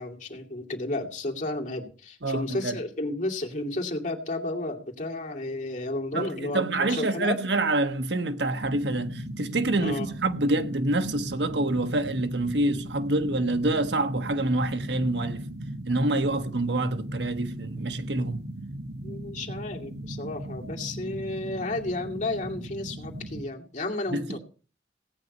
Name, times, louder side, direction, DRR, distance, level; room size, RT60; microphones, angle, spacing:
voice 1, 0.0-7.4 9.8-10.1 19.0-24.4, left 2 dB, 45° left, 2.6 m, -32 dB
voice 2, 2.2-2.8 6.1-15.4 15.8-18.4 24.1-24.4, right 2 dB, 80° right, 1.4 m, -27 dB
sound 1, 8.6-23.4, right 1 dB, 65° right, 1.5 m, -38 dB
17.0 x 9.4 x 5.4 m
head